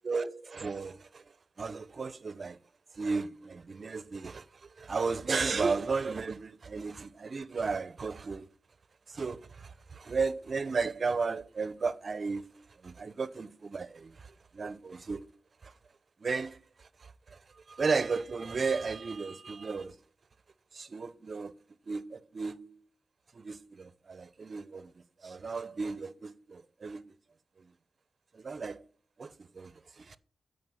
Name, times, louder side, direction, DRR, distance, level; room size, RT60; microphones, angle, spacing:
voice 1, 0.0-1.2 1.6-2.6 2.9-8.5 9.1-15.3 15.6-15.7 16.2-20.0 20.7-21.6 21.9-22.8 23.3-27.1 27.6-27.7 28.3-28.9 29.2-30.2, right 4 dB, 60° right, 0.6 m, -35 dB
7.9 x 5.2 x 5.7 m
cardioid pair, 55°, 0 cm